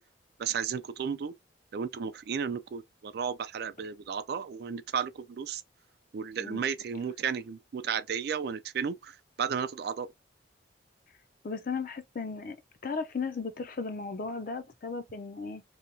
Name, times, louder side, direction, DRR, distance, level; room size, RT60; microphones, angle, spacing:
voice 1, 0.4-1.3 1.7-5.6 6.1-10.1, right 7 dB, 55° right, 0.3 m, -33 dB
voice 2, 11.4-12.6 12.8-15.6, left 4 dB, 45° left, 0.4 m, -35 dB
2.9 x 2.2 x 2.6 m
head